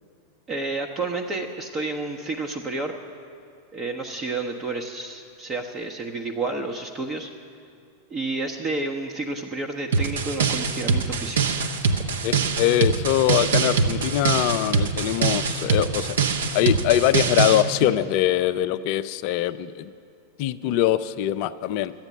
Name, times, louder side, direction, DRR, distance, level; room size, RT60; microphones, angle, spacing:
voice 1, 0.5-2.9 3.7-7.3 8.1-11.4, right 3 dB, 25° right, 3 dB, 0.8 m, -30 dB
sound 1, 9.9-17.6, right 5 dB, 60° right, 0.9 m, -23 dB
voice 2, 12.2-16.2 16.5-19.9 20.4-21.9, left 12 dB, 45° left, 14 dB, 0.4 m, -23 dB
12.0 x 8.9 x 9.9 m, 2.3 s
figure-of-eight pair, 90°, 0 cm